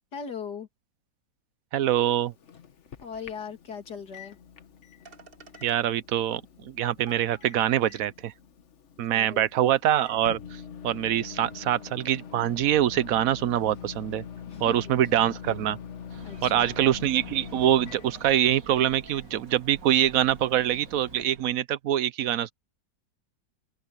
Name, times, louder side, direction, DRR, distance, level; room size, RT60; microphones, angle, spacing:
voice 1, 0.1-0.7 3.0-4.4 9.0-9.5 14.5-15.1 16.2-16.8, left 6 dB, 65° left, 3.0 m, -39 dB
voice 2, 1.7-2.3 5.6-8.3 9.0-10.4 10.8-14.2 14.6-15.8 16.4-22.5, right 11 dB, 60° right, 1.0 m, -24 dB
Microwave oven, 2.0-21.4, left 7 dB, 45° left, 1.3 m, -44 dB
sound 1, 3.0-3.1 3.4-3.5 4.7-4.8 5.1-5.8 6.7-6.8 7.1-7.8, right 2 dB, 35° right, 1.7 m, -49 dB
sound 2, 16.1-21.6, right 4 dB, 90° right, 3.3 m, -48 dB
omnidirectional pair, 1.9 m